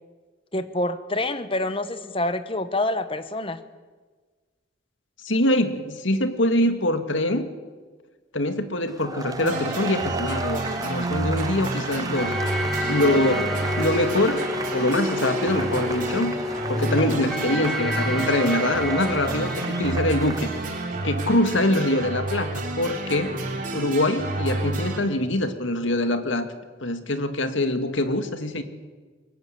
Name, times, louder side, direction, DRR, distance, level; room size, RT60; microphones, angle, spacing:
voice 1, 0.5-3.6, left 2 dB, 25° left, 11 dB, 1.3 m, -27 dB
voice 2, 5.2-7.5 8.3-12.3 12.9-13.5 13.8-16.3 16.7-20.5 21.0-23.4 23.7-26.5 26.8-28.6, left 1 dB, 80° left, 8 dB, 2.1 m, -24 dB
sound 1, 8.9-20.5, right 3 dB, 20° right, 0.8 m, -36 dB
sound 2, 9.4-25.0, right 2 dB, 45° right, 3.7 m, -30 dB
sound 3, 12.2-20.9, left 1 dB, ahead, 3.2 m, -30 dB
23.0 x 20.0 x 8.1 m, 1.4 s
head